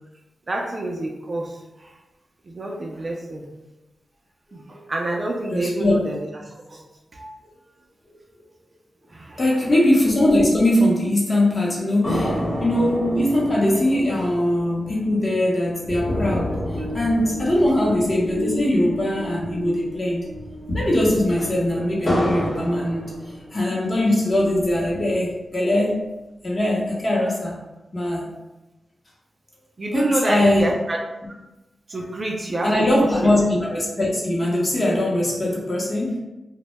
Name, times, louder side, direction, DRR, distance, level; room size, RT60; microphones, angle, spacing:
voice 1, 0.5-1.5 2.5-3.4 4.9-6.2 6.7-6.8 7.1-7.4 9.1-9.4 29.8-31.0 31.9-32.7 33.0-33.1, right 1 dB, 40° right, 0 dB, 0.3 m, -27 dB
voice 2, 5.5-6.0 9.4-12.3 12.6-16.5 16.9-20.3 20.7-23.1 23.5-26.0 26.4-27.6 27.9-28.3 29.9-30.7 32.6-36.2, left 1 dB, 35° left, -4 dB, 0.7 m, -21 dB
sound 1, 12.0-19.6 19.9-20.0 20.4-23.8 24.3-25.3, left 1 dB, 60° left, 0.9 m, -30 dB
sound 2, 16.0-23.5, equal, 75° right, 0.6 m, -36 dB
2.1 x 2.0 x 2.9 m, 1.0 s
wide cardioid pair, 110°, 0 cm